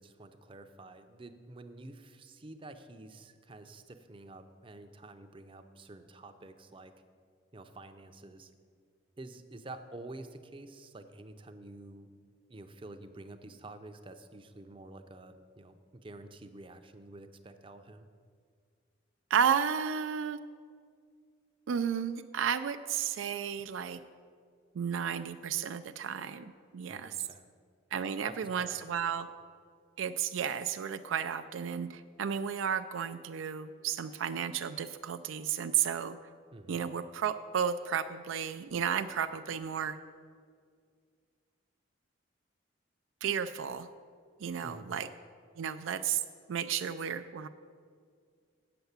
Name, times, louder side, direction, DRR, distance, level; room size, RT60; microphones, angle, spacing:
voice 1, 0.0-6.9 7.5-8.5 9.2-12.1 12.5-18.1 26.9-27.5 28.0-29.1 36.5-36.8 44.6-44.9, right 2 dB, 25° right, 8 dB, 0.5 m, -49 dB
voice 2, 19.3-20.4 21.7-24.0 24.8-27.3 27.9-29.3 30.0-36.2 36.7-40.0 43.2-43.9 44.4-45.1 45.6-46.2 46.5-47.5, right 8 dB, 85° right, 10 dB, 0.4 m, -33 dB
8.0 x 6.8 x 8.0 m, 2.1 s
head